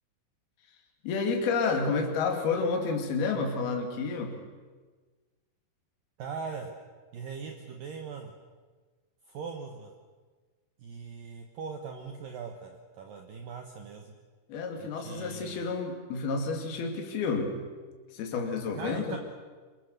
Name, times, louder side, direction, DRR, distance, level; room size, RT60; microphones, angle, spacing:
voice 1, 1.0-4.4 14.5-17.6 18.1-19.2, left 4 dB, 65° left, 3 dB, 4.3 m, -30 dB
voice 2, 6.2-6.7 7.1-8.3 9.3-9.9 10.8-14.1 14.8-15.7 18.7-19.2, right 5 dB, 60° right, 3 dB, 2.8 m, -40 dB
26.5 x 23.5 x 6.7 m, 1.4 s
omnidirectional pair, 5.0 m